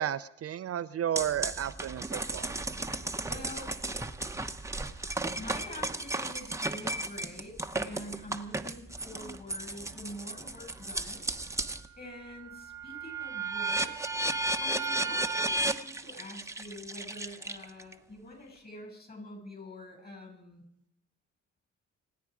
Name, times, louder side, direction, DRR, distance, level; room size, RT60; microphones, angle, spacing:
voice 1, 0.0-2.5, right 10 dB, 50° right, 12 dB, 0.6 m, -33 dB
sound 1, 1.2-11.9 12.3-17.9, right 2 dB, 10° right, 1.0 m, -34 dB
voice 2, 3.3-3.7 5.3-11.3 11.5-14.3 14.6-20.6, left 1 dB, 30° left, 3 dB, 6.6 m, -46 dB
27.0 x 9.5 x 4.9 m, 0.74 s
cardioid pair, 90°, 30 cm